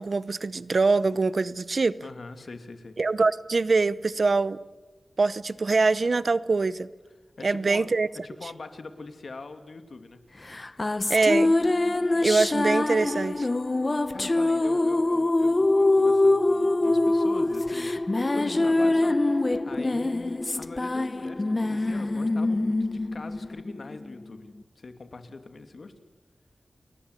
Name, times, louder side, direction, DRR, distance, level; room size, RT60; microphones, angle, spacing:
voice 1, 0.0-2.0 3.0-4.6 5.2-6.9 7.4-8.1 11.1-11.5 12.2-13.5, right 3 dB, 55° right, 17 dB, 0.8 m, -23 dB
voice 2, 2.0-3.0 7.4-7.9 8.2-10.2 12.5-12.6 14.1-25.9, left 3 dB, 60° left, 8 dB, 2.9 m, -43 dB
sound 1, 10.5-24.2, left 2 dB, 30° left, 0.9 m, -24 dB
30.0 x 22.0 x 8.4 m, 1.3 s
wide cardioid pair, 95°, 0 cm